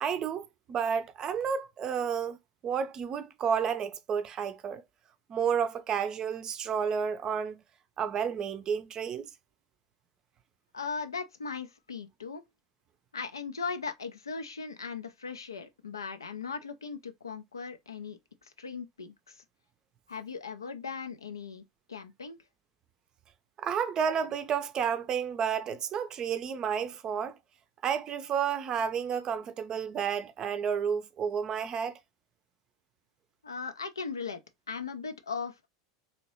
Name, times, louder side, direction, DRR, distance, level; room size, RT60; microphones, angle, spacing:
voice 1, 0.0-2.4 2.6-4.8 5.3-7.6 8.0-9.3 23.6-27.4 27.8-32.0, right 7 dB, 35° right, 0.5 m, -31 dB
voice 2, 10.7-12.4 13.1-19.4 20.1-21.6 21.9-22.4 33.4-34.4 34.7-35.7, left 5 dB, 85° left, 0.5 m, -38 dB
3.0 x 2.8 x 3.0 m
hypercardioid pair, 90°, 2 cm